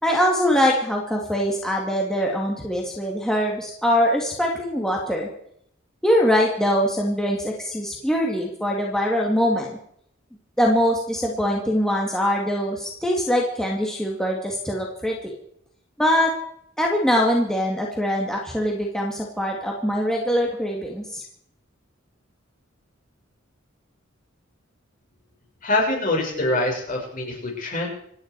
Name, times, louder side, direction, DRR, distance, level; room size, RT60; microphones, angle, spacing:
voice 1, 0.0-5.3 6.0-9.7 10.6-15.3 16.0-16.3 16.8-21.2, equal, 5° left, -2 dB, 2.2 m, -23 dB
voice 2, 25.6-27.9, left 2 dB, 40° left, 0 dB, 6.2 m, -24 dB
27.0 x 10.5 x 4.8 m, 0.69 s
head